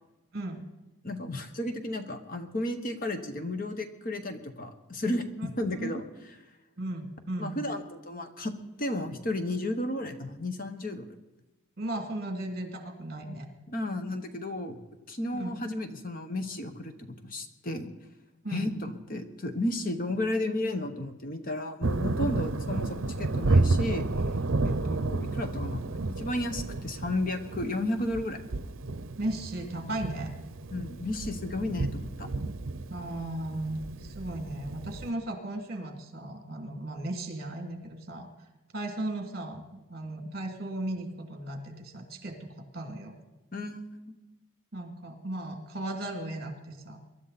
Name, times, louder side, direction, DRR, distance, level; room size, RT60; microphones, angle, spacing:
voice 1, 1.0-6.0 7.4-11.1 13.7-14.8 15.1-17.9 18.5-24.1 24.6-28.4 30.7-32.3 43.5-44.2, left 1 dB, 40° left, 7 dB, 1.2 m, -33 dB
voice 2, 6.8-7.6 11.8-13.5 15.3-15.6 18.4-18.7 24.6-24.9 29.2-30.3 32.9-38.5 38.7-43.2 44.7-47.0, right 1 dB, 45° right, 4 dB, 2.7 m, -36 dB
Thunder, 21.8-35.1, right 2 dB, 70° right, 0.8 m, -31 dB
23.0 x 12.5 x 4.2 m, 1.1 s
head